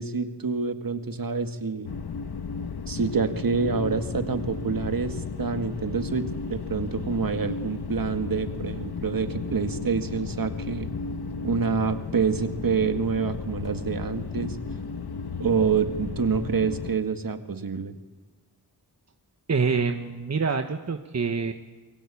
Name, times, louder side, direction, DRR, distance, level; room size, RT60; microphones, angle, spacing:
voice 1, 0.0-1.9 2.9-10.9 11.4-14.6 15.4-17.9, right 5 dB, 60° right, 7 dB, 2.1 m, -27 dB
sound 1, 1.8-17.0, left 5 dB, 75° left, 1.4 m, -34 dB
voice 2, 19.5-21.5, right 5 dB, 40° right, 6 dB, 1.4 m, -26 dB
29.5 x 22.5 x 8.6 m, 1.3 s
wide cardioid pair, 100°, 39 cm